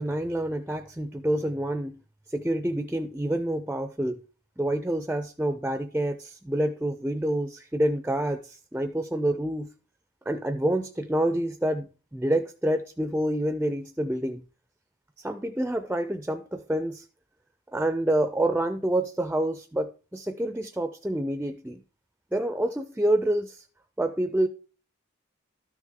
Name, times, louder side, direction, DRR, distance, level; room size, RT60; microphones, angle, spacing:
voice 1, 0.0-2.0 2.3-4.2 4.6-9.7 10.3-14.4 15.2-17.1 17.7-21.8 22.3-23.7 24.0-24.5, right 1 dB, 10° right, 0.3 m, -27 dB
12.5 x 6.2 x 3.7 m
head